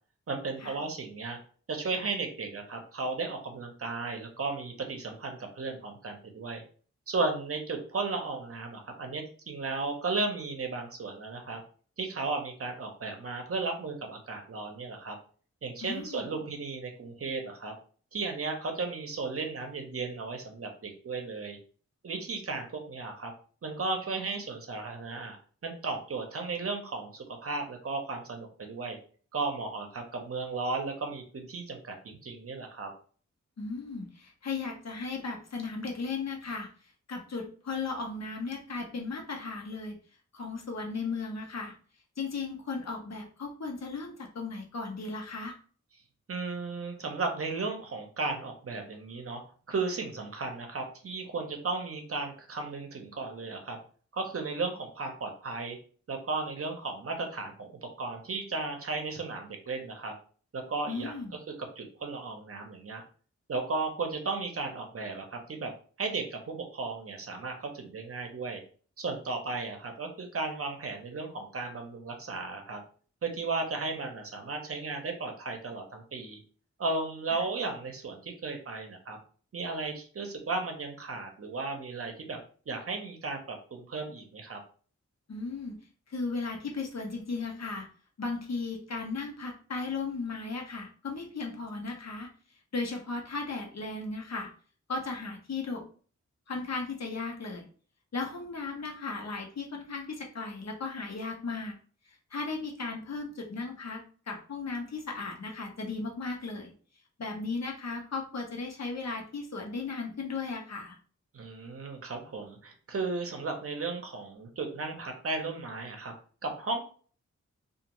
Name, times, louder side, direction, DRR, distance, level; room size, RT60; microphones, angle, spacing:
voice 1, 0.3-1.4 1.7-6.6 7.1-11.6 12.0-15.2 15.6-17.7 18.1-21.6 22.0-23.3 23.6-25.4 25.6-29.0 29.3-32.9 46.3-49.4 49.7-53.8 54.1-55.8 56.1-57.7 58.0-60.1 60.5-61.1 61.8-63.0 63.5-65.7 66.0-68.6 69.0-72.8 73.2-76.4 76.8-79.2 79.5-82.4 82.7-84.6 111.3-116.1 116.4-116.8, right 3 dB, 50° right, 4 dB, 0.7 m, -35 dB
voice 2, 15.8-16.3 33.6-36.7 37.1-40.0 40.3-41.7 42.2-45.6 60.9-61.4 85.3-85.8 86.1-87.9 88.2-92.3 92.7-94.5 94.9-95.8 96.5-97.7 98.1-101.8 102.3-106.7 107.2-111.0, left 4 dB, 65° left, 1 dB, 0.8 m, -36 dB
2.4 x 2.4 x 2.9 m, 0.42 s
wide cardioid pair, 90°, 29 cm